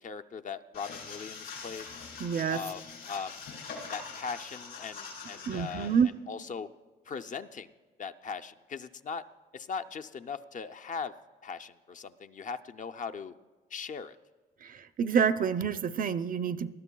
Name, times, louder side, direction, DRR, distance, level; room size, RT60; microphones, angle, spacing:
voice 1, 0.0-1.9 2.5-3.4 3.9-5.9 6.3-6.7 7.1-7.7 8.0-9.2 9.5-11.1 11.4-13.3 13.7-14.2, left 5 dB, 40° left, 8 dB, 0.5 m, -39 dB
sound 1, 0.7-6.0, left 5 dB, 80° left, 4.0 m, -43 dB
voice 2, 2.2-2.6 5.5-6.1 14.6-16.7, right 7 dB, 45° right, 12 dB, 0.5 m, -28 dB
19.5 x 13.0 x 2.3 m, 1.4 s
cardioid pair, 90°, 20 cm